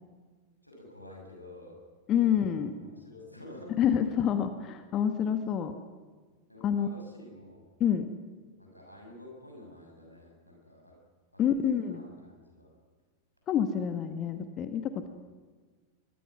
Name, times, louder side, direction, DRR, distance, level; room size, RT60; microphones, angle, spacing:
voice 1, 0.6-1.8 2.1-2.4 2.8-3.7 6.5-7.7 8.6-11.0 11.3-12.7, left 1 dB, 90° left, 0 dB, 7.0 m, -50 dB
voice 2, 2.1-2.7 3.8-5.7 6.6-6.9 7.8-8.1 11.4-12.0 13.5-15.1, left 9 dB, 30° left, 8 dB, 1.5 m, -27 dB
23.5 x 23.5 x 6.1 m, 1.4 s
figure-of-eight pair, 90°, 0 cm